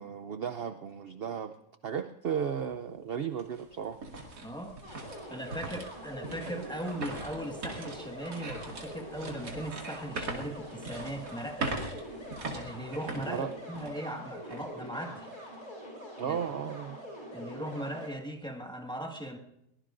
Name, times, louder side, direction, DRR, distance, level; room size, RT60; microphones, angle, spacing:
voice 1, 0.0-1.5 1.8-4.0 13.3-13.5 16.2-17.0, right 7 dB, 60° right, 10 dB, 0.6 m, -34 dB
sound 1, 2.6-2.7 3.2-14.1 14.5-14.6 15.2-15.5, right 2 dB, 80° right, 2.8 m, -41 dB
voice 2, 4.4-11.7 12.5-15.3 16.2-16.4 17.3-19.4, right 1 dB, 5° left, 1 dB, 1.5 m, -39 dB
sound 2, 4.8-18.1, equal, 30° left, 6.3 m, -44 dB
23.0 x 20.0 x 2.6 m, 0.83 s
omnidirectional pair, 1.7 m